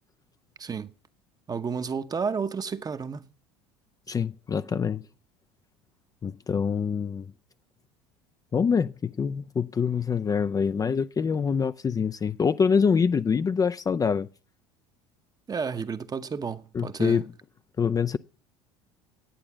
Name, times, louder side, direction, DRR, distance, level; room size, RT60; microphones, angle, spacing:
voice 1, 0.6-0.9 1.5-3.3 15.5-17.2, right 5 dB, 25° right, 0.9 m, -31 dB
voice 2, 4.1-5.0 6.2-7.3 8.5-14.3 16.7-17.2 17.8-18.2, left 6 dB, 25° left, 0.5 m, -25 dB
10.0 x 8.7 x 6.1 m
hypercardioid pair, 80°, 15 cm